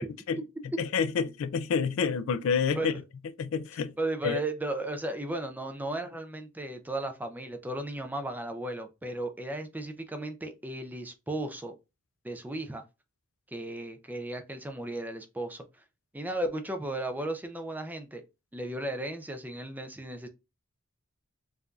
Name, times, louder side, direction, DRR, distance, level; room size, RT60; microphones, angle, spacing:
voice 1, 0.8-2.9 3.4-3.9 4.2-4.4, left 6 dB, 65° left, 0.3 m, -28 dB
voice 2, 4.0-11.7 12.2-12.8 13.5-15.6 16.1-18.2 18.5-20.3, right 1 dB, 10° right, 0.4 m, -35 dB
4.7 x 2.6 x 2.3 m
head